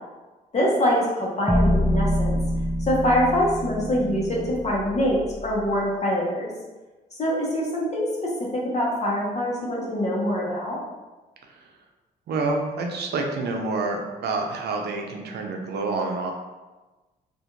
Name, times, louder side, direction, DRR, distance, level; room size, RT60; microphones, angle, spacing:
voice 1, 0.5-2.4 2.9-6.5 7.1-8.3 8.7-10.8, equal, 40° left, -4 dB, 1.0 m, -24 dB
sound 1, 1.5-5.7, equal, 5° right, 0.3 m, -25 dB
voice 2, 12.3-16.3, right 3 dB, 65° right, 2 dB, 0.5 m, -27 dB
2.4 x 2.4 x 2.8 m, 1.2 s
supercardioid pair, 55°, 19 cm